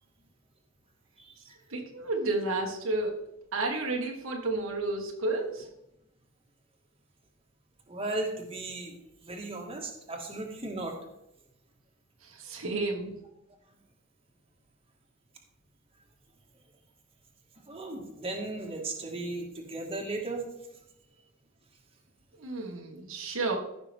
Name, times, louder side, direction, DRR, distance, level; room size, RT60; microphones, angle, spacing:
voice 1, 1.7-3.2 3.5-5.7 12.2-13.2 22.3-23.6, right 2 dB, 80° right, 1 dB, 1.6 m, -31 dB
voice 2, 7.9-10.9 17.7-20.4, right 2 dB, 30° right, 0 dB, 1.7 m, -36 dB
14.5 x 5.9 x 3.5 m, 0.84 s
head